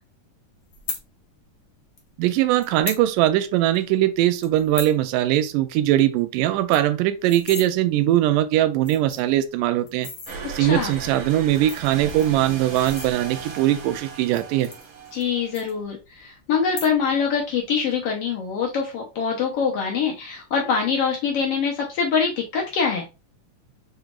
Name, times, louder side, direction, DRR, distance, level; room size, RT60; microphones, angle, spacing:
sound 1, 0.7-1.0 2.0-2.1 2.6-3.0 3.4-3.5 3.7-4.0 4.4-5.0 5.3-5.5 5.8-5.9 6.2-6.3 6.5-7.7 8.4-8.5 8.8-9.4 9.9-10.4 11.3-13.5 14.2-15.3 15.5-16.2 16.6-17.2 17.5-17.9, left 4 dB, 60° left, 1.2 m, -36 dB
voice 1, 2.2-10.1 10.5-14.7, right 13 dB, 85° right, 2.1 m, -21 dB
sound 2, 10.3-15.8, right 5 dB, 60° right, 1.8 m, -37 dB
voice 2, 10.6-10.9 15.1-23.1, left 6 dB, 80° left, 1.3 m, -24 dB
5.6 x 3.9 x 2.4 m
omnidirectional pair, 3.8 m